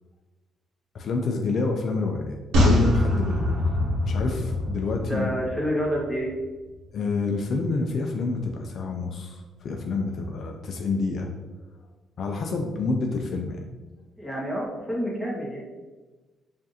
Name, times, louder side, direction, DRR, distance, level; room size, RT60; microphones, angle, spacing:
voice 1, 0.9-3.6 4.0-5.3 6.9-11.3 12.2-13.6, left 3 dB, 60° left, 2 dB, 0.4 m, -28 dB
sound 1, 2.5-6.0 6.3-6.4, left 1 dB, 90° right, 0.9 m, -24 dB
voice 2, 5.1-6.3 14.2-15.6, equal, ahead, -5 dB, 1.2 m, -28 dB
4.7 x 2.6 x 2.8 m, 1.2 s
cardioid pair, 90°, 0 cm